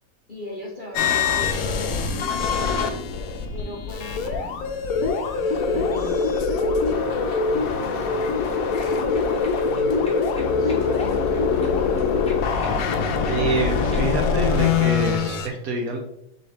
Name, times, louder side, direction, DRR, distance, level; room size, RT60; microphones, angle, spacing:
voice 1, 0.3-2.8 3.5-4.8 5.3-6.4 6.9-12.3, equal, 50° left, -4 dB, 0.6 m, -39 dB
sound 1, 0.9-15.5, left 5 dB, 70° left, 0.8 m, -23 dB
sound 2, 8.2-14.3, left 1 dB, 5° left, 0.6 m, -45 dB
voice 2, 13.3-16.0, right 2 dB, 70° right, 3 dB, 0.9 m, -26 dB
4.0 x 3.9 x 3.3 m, 0.79 s
omnidirectional pair, 1.9 m